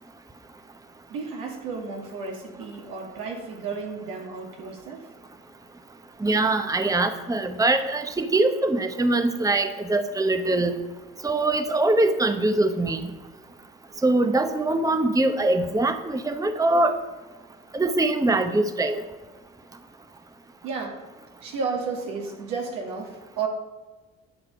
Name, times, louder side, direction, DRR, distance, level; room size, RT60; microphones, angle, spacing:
voice 1, 1.1-5.1 20.6-21.0 21.4-23.5, right 5 dB, 80° right, 1 dB, 2.2 m, -32 dB
voice 2, 6.2-10.7 11.2-13.1 14.0-17.0 17.7-19.0, right 2 dB, 10° right, 8 dB, 0.9 m, -23 dB
11.0 x 6.7 x 5.4 m, 1.3 s
hypercardioid pair, 60°, 35 cm